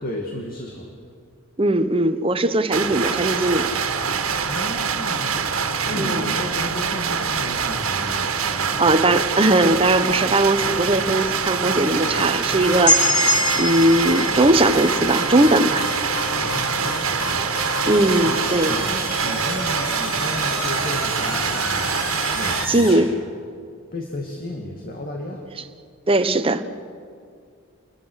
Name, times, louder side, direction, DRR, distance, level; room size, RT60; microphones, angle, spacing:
voice 1, 0.0-0.9 4.5-5.5 5.8-8.9 16.3-17.7 18.1-18.2 18.6-22.0 22.4-23.0 23.9-25.5, left 1 dB, 45° left, 1 dB, 2.4 m, -33 dB
voice 2, 1.6-3.7 5.9-6.3 8.4-13.3 13.6-15.9 17.9-18.9 22.7-23.1 26.1-26.6, right 1 dB, 25° right, 9 dB, 1.0 m, -19 dB
sound 1, 2.7-22.7, right 6 dB, 80° right, 1.8 m, -24 dB
sound 2, 11.9-23.0, left 3 dB, 80° left, 4.4 m, -32 dB
sound 3, 12.9-16.7, left 1 dB, 25° left, 3.6 m, -24 dB
29.0 x 22.0 x 6.5 m, 2.2 s
head